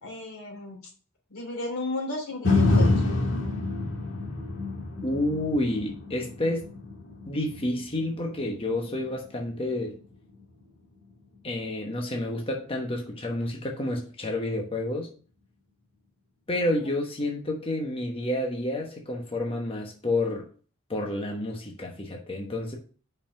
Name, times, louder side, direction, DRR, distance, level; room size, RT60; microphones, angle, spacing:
voice 1, 0.0-0.8 1.3-2.9, left 2 dB, 80° left, 3.0 m, -33 dB
sound 1, 2.4-10.6 11.1-11.2, left 2 dB, 55° left, 1.9 m, -28 dB
voice 2, 5.0-6.7 7.3-10.0 11.4-15.1 16.5-20.5 20.9-22.8, left 1 dB, 25° left, 1.0 m, -29 dB
5.6 x 4.9 x 5.7 m
head